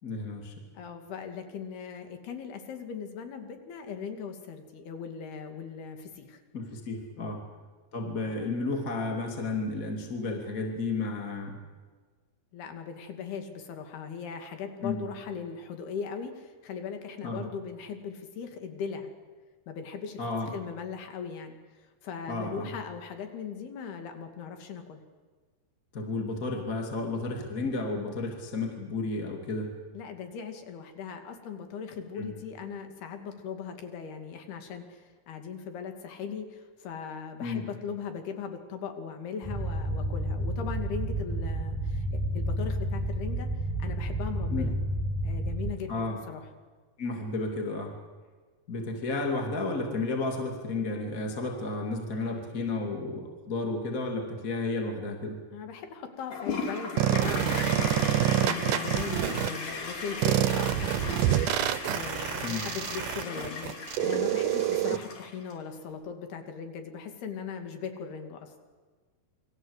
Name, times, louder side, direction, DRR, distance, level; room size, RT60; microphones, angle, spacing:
voice 1, 0.0-0.6 6.5-7.4 7.9-11.6 14.8-15.0 17.2-17.4 20.2-20.5 22.3-22.7 25.9-29.7 32.2-32.3 37.4-37.6 44.5-44.7 45.9-46.2 47.0-48.0 48.7-55.4 62.4-62.7, left 3 dB, 25° left, 2 dB, 2.5 m, -32 dB
voice 2, 0.7-6.4 7.2-7.4 12.5-19.1 19.7-20.2 20.5-25.0 29.9-43.5 43.8-44.7 45.2-46.4 55.5-68.5, left 6 dB, 75° left, 6 dB, 4.2 m, -39 dB
sound 1, 39.4-45.7, right 1 dB, ahead, 1.3 m, -30 dB
Toilet flush, 56.3-65.5, left 3 dB, 55° left, 5.1 m, -37 dB
sound 2, 57.0-59.5 60.2-65.0, right 12 dB, 75° right, 2.0 m, -27 dB
28.5 x 22.5 x 8.2 m, 1.4 s
omnidirectional pair, 4.6 m